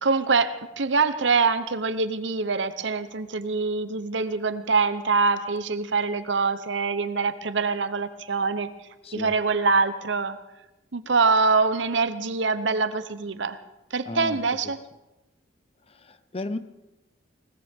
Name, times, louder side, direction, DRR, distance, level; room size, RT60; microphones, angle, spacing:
voice 1, 0.0-8.7 9.1-10.4 10.9-13.6 13.9-14.8, right 4 dB, 70° right, 12 dB, 0.9 m, -24 dB
voice 2, 14.1-14.4 16.0-16.6, left 2 dB, 30° left, 12 dB, 0.7 m, -33 dB
21.0 x 18.5 x 3.6 m, 0.99 s
head